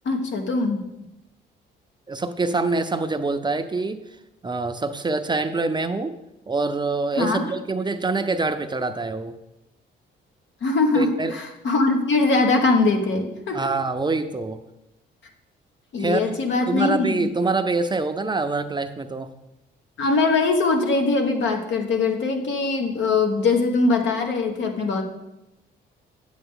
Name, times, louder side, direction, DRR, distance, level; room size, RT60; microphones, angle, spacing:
voice 1, 0.0-0.8 7.2-7.4 10.6-13.7 15.9-17.3 20.0-25.0, left 3 dB, 70° left, 4 dB, 1.4 m, -22 dB
voice 2, 2.1-4.0 4.4-6.2 6.5-9.4 10.9-11.3 13.5-14.6 16.0-16.4 16.7-19.3, right 3 dB, 20° right, 8 dB, 0.6 m, -25 dB
8.9 x 7.9 x 3.7 m, 0.92 s
cardioid pair, 90°, 20 cm